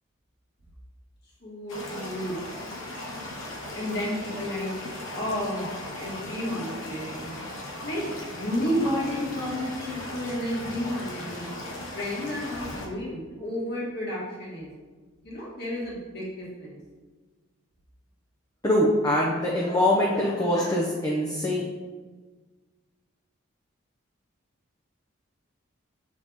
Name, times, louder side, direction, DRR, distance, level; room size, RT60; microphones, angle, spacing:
voice 1, 1.4-2.4 3.8-4.7 5.1-5.7 5.9-7.5 7.8-11.5 11.9-14.7 15.2-16.8, equal, 50° left, -6 dB, 1.8 m, -31 dB
sound 1, 1.7-12.9, left 1 dB, 85° left, 1.2 m, -38 dB
voice 2, 18.6-21.6, left 1 dB, 15° left, -4 dB, 0.7 m, -23 dB
6.5 x 4.1 x 3.6 m, 1.4 s
head